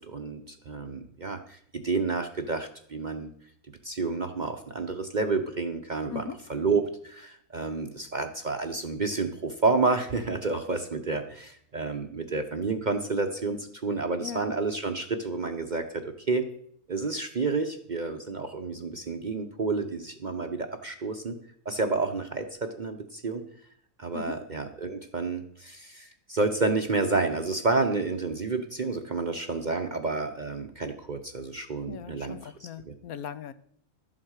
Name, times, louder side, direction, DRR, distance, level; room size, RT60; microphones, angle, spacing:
voice 1, 0.0-3.3 3.8-6.2 6.5-16.5 16.9-21.4 21.6-23.4 24.0-32.9, right 3 dB, 40° right, 6 dB, 0.7 m, -30 dB
voice 2, 14.2-14.6 24.1-24.4 31.9-33.5, left 8 dB, 75° left, 13 dB, 1.1 m, -39 dB
12.0 x 7.6 x 6.4 m, 0.66 s
omnidirectional pair, 1.6 m